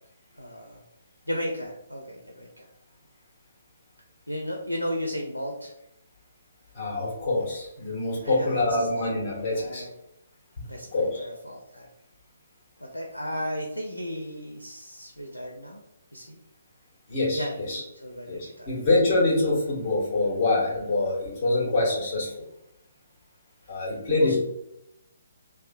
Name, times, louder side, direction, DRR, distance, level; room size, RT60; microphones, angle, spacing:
voice 1, 0.4-0.8 1.3-2.7 4.3-5.7 8.2-8.7 9.5-9.9 10.7-11.9 12.8-15.8 16.1-16.4 17.4-18.7 24.2-24.4, equal, 85° left, 0 dB, 0.4 m, -34 dB
voice 2, 6.7-9.8 10.9-11.3 17.1-17.8 18.3-22.3 23.7-24.4, left 2 dB, 30° left, -3 dB, 0.9 m, -25 dB
2.6 x 2.0 x 2.5 m, 0.82 s
figure-of-eight pair, 135°, 0 cm